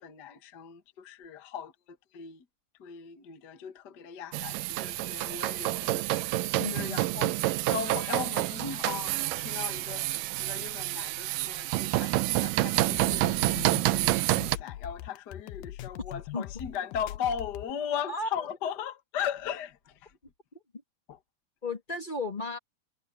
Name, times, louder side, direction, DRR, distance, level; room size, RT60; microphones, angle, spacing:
voice 1, 0.0-1.7 2.1-2.4 2.8-7.3 7.7-19.8 20.0-20.1 21.1-21.2, left 8 dB, 55° left, 1.1 m, -38 dB
sound 1, 4.3-14.6, right 17 dB, 85° right, 2.0 m, -28 dB
voice 2, 6.6-7.3 16.3-16.5 18.1-18.5 21.6-22.6, left 2 dB, 20° left, 1.3 m, -35 dB
sound 2, 12.6-17.7, left 14 dB, 80° left, 2.1 m, -41 dB
omnidirectional pair, 4.5 m